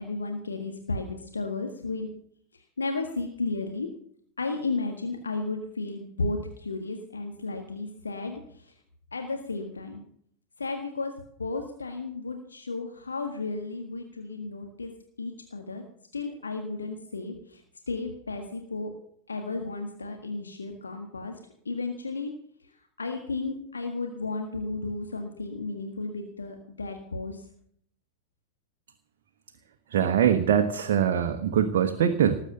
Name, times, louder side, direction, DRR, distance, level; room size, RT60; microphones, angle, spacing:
voice 1, 0.0-2.1 2.8-3.9 4.4-8.7 9.1-10.0 10.6-11.1 11.4-14.9 15.2-15.8 16.1-18.9 19.3-21.3 21.6-22.3 23.0-27.4, left 3 dB, 75° left, 4 dB, 1.7 m, -33 dB
voice 2, 29.9-32.4, right 9 dB, 55° right, 5 dB, 1.3 m, -23 dB
19.0 x 8.3 x 6.8 m, 0.65 s
figure-of-eight pair, 90°, 0 cm